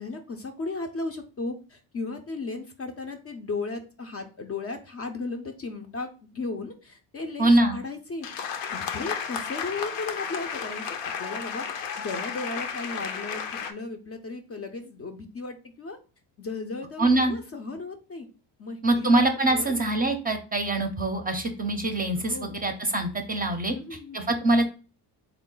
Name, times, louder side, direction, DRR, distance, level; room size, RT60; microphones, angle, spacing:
voice 1, 0.0-8.3 8.7-11.6 12.0-16.0 16.4-18.3 18.6-19.2 19.5-19.7 22.2-22.6 23.7-24.4, left 3 dB, 30° left, 5 dB, 0.5 m, -35 dB
voice 2, 7.4-7.8 17.0-17.4 18.8-23.7 24.1-24.7, right 2 dB, 20° right, 5 dB, 0.6 m, -24 dB
sound 1, 8.2-13.7, left 7 dB, 75° left, 0.7 m, -33 dB
3.6 x 2.3 x 3.7 m, 0.34 s
cardioid pair, 90°, 45 cm